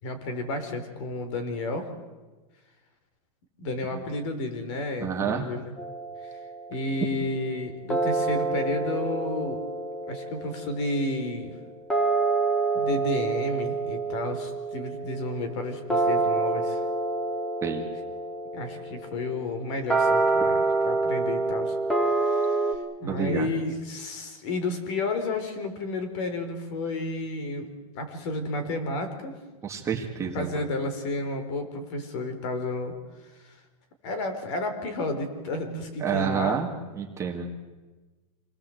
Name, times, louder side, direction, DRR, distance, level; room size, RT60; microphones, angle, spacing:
voice 1, 0.0-1.9 3.6-5.7 6.2-6.4 6.7-9.6 10.1-11.5 12.7-16.8 18.5-21.8 22.0-27.7 27.9-29.3 30.3-32.9 33.4-33.6 34.0-36.6, left 2 dB, 50° left, 8 dB, 4.5 m, -31 dB
voice 2, 5.0-5.5 17.6-17.9 23.1-23.5 29.6-30.7 36.0-36.7 36.9-37.5, right 7 dB, 15° right, 1 dB, 2.0 m, -29 dB
sound 1, 5.8-7.1 7.9-22.7, right 3 dB, 5° left, 2.1 m, -27 dB
27.5 x 19.5 x 8.1 m, 1.2 s
supercardioid pair, 160°, 19 cm